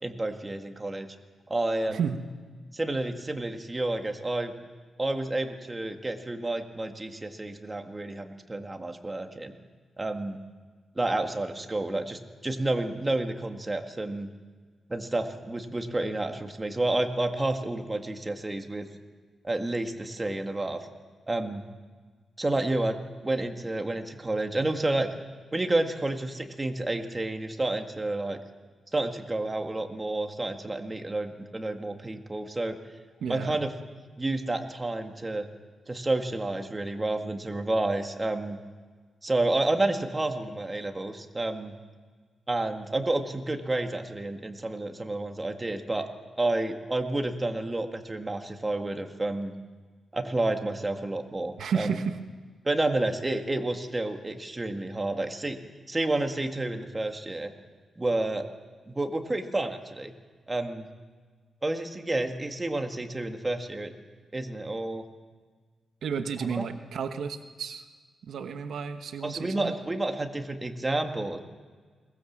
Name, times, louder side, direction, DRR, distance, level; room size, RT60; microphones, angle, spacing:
voice 1, 0.0-1.1 1.5-2.1 2.7-4.5 5.0-9.6 10.0-10.4 11.0-14.3 14.9-18.9 19.4-20.9 21.3-21.6 22.4-25.1 25.5-28.4 28.9-32.8 33.3-33.7 34.2-35.5 35.9-38.6 39.2-41.7 42.5-46.1 46.4-49.5 50.1-52.0 52.6-55.6 55.9-57.5 58.0-58.4 58.9-60.1 60.5-60.9 61.6-63.9 64.3-65.0 66.5-66.6 69.2-71.4, right 2 dB, 20° right, 5 dB, 1.7 m, -30 dB
voice 2, 1.9-2.2 33.2-33.6 51.6-52.2 66.0-67.8 68.2-69.7, right 6 dB, 75° right, 8 dB, 1.2 m, -32 dB
22.0 x 20.0 x 7.4 m, 1.5 s
wide cardioid pair, 120°, 0 cm